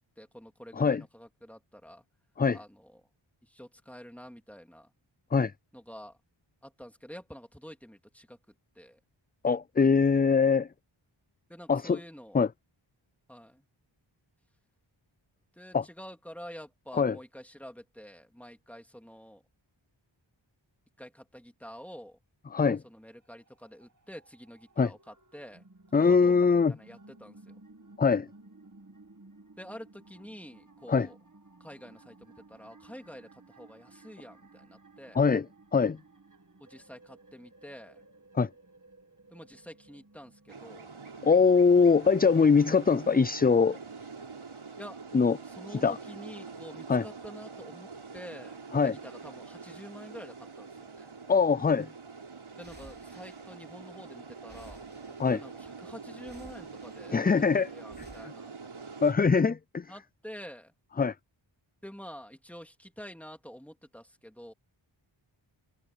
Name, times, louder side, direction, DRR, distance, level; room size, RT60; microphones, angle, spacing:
voice 1, 0.2-2.0 2.5-3.0 3.4-4.9 5.7-6.2 6.6-8.4 8.7-9.0 11.5-12.4 13.3-13.7 15.5-19.4 21.0-22.2 22.8-25.6 25.9-27.6 29.6-31.2 31.6-35.2 36.6-38.0 39.3-40.9 44.8-45.0 45.5-51.1 52.6-54.8 55.2-58.5 59.9-60.7 61.8-64.5, equal, 5° left, 3.0 m, -48 dB
voice 2, 9.4-10.7 11.7-12.0 12.3-12.5 15.7-15.8 16.9-17.2 22.5-22.8 24.8-24.9 25.9-26.7 28.0-28.3 30.9-31.1 35.2-35.5 35.7-36.0 38.3-38.5 41.2-43.8 45.1-45.4 45.8-46.0 46.9-47.0 48.7-49.0 51.3-51.9 55.2-55.4 57.1-57.7 59.0-59.9 61.0-61.1, left 5 dB, 20° left, 0.3 m, -22 dB
sound 1, 23.1-41.5, right 2 dB, 40° right, 2.2 m, -57 dB
sound 2, 40.5-59.1, right 4 dB, 80° right, 4.1 m, -45 dB
sound 3, 52.6-54.1 54.4-55.7 56.2-57.4 57.9-58.3, right 1 dB, 20° right, 3.8 m, -55 dB
wide cardioid pair, 80°, 48 cm